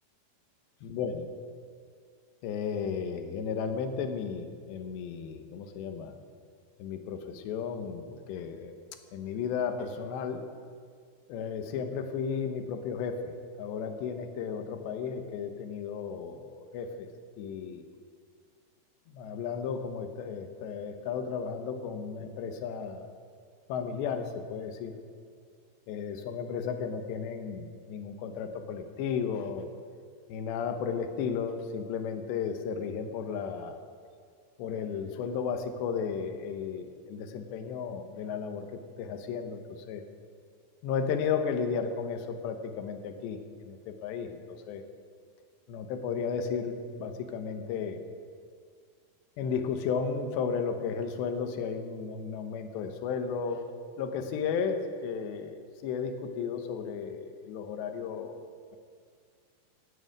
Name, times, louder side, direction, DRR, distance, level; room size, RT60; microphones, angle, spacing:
voice 1, 0.8-1.3 2.4-6.2 6.8-8.8 9.1-10.4 11.3-17.1 17.4-17.8 19.1-23.1 23.7-25.0 25.9-29.7 30.3-33.8 34.6-40.0 40.8-44.8 45.7-48.0 49.4-53.6 54.0-58.4, left 6 dB, 90° left, 7 dB, 3.3 m, -34 dB
14.5 x 9.1 x 9.4 m, 2.1 s
omnidirectional pair, 4.9 m